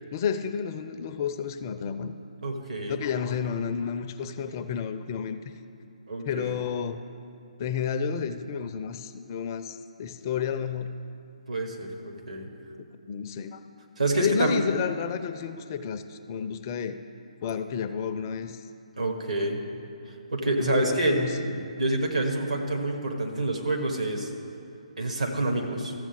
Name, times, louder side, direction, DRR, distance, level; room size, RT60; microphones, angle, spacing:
voice 1, 0.1-2.1 2.9-5.5 6.3-7.0 7.6-10.9 13.1-13.6 14.1-17.0 17.4-18.6 20.6-21.7, left 7 dB, 30° left, 9 dB, 0.4 m, -31 dB
voice 2, 2.4-3.0 6.1-6.6 11.5-12.5 14.0-14.6 19.0-19.6 20.3-21.2 21.8-24.3 25.0-25.9, right 2 dB, 75° right, 2 dB, 1.5 m, -27 dB
14.0 x 7.2 x 3.7 m, 2.7 s
figure-of-eight pair, 135°, 4 cm